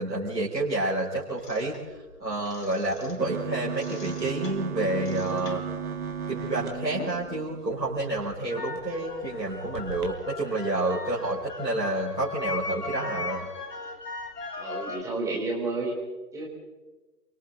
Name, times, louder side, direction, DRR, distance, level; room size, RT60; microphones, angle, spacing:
voice 1, 0.0-1.7 2.2-5.6 6.3-13.5, right 2 dB, 90° right, -6 dB, 5.3 m, -29 dB
sound 1, 1.4-3.4 3.7-7.4 7.7-15.0, left 3 dB, 70° left, 3.4 m, -39 dB
sound 2, 3.2-8.2 8.8-8.9 9.1-9.3 9.7-10.1, right 6 dB, 60° right, 3.3 m, -35 dB
voice 2, 14.6-15.9 16.3-16.5, right 3 dB, 5° right, -2 dB, 3.8 m, -30 dB
29.0 x 24.0 x 4.0 m, 1.2 s
figure-of-eight pair, 140°, 50 cm